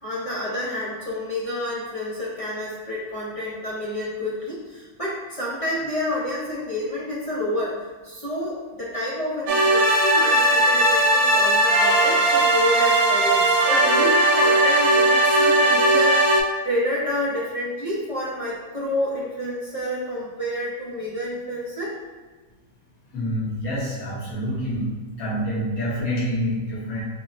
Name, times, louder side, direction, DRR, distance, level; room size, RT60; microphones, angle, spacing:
voice 1, 0.0-16.4 16.6-22.0, left 1 dB, 50° left, -8 dB, 0.4 m, -29 dB
sound 1, 9.5-16.4, right 1 dB, 75° right, 1.1 m, -18 dB
voice 2, 23.1-24.9 25.2-27.0, equal, 75° left, -8 dB, 1.5 m, -27 dB
5.1 x 2.1 x 2.5 m, 1.3 s
omnidirectional pair, 1.5 m